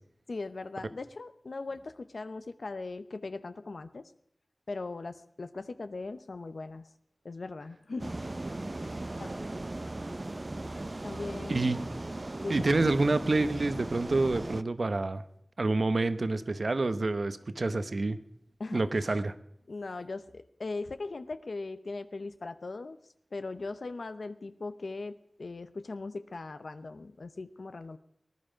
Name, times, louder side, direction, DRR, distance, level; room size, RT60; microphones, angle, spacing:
voice 1, 0.3-4.1 4.7-6.9 7.2-8.1 9.2-9.3 11.0-11.6 12.4-12.7 18.6-19.1 19.7-23.0 23.3-28.0, left 3 dB, 85° left, 11 dB, 0.7 m, -39 dB
sound 1, 8.0-14.6, right 2 dB, 45° right, 0.5 m, -38 dB
voice 2, 12.5-15.2 15.6-18.2 18.7-19.3, right 2 dB, 70° right, 12 dB, 0.9 m, -28 dB
19.5 x 11.5 x 5.1 m, 0.70 s
wide cardioid pair, 60°, 0 cm